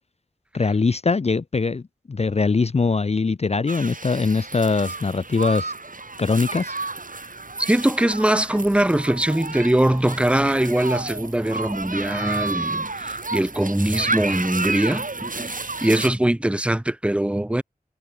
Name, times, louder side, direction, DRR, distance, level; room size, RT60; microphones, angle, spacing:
voice 1, 0.5-5.7 6.2-6.7, left 4 dB, 40° left, 0.5 m, -22 dB
sound 1, 3.7-16.1, right 3 dB, 60° right, 4.2 m, -31 dB
voice 2, 7.6-15.6 15.8-17.6, right 1 dB, 5° right, 0.6 m, -22 dB
wide cardioid pair, 70°, 16 cm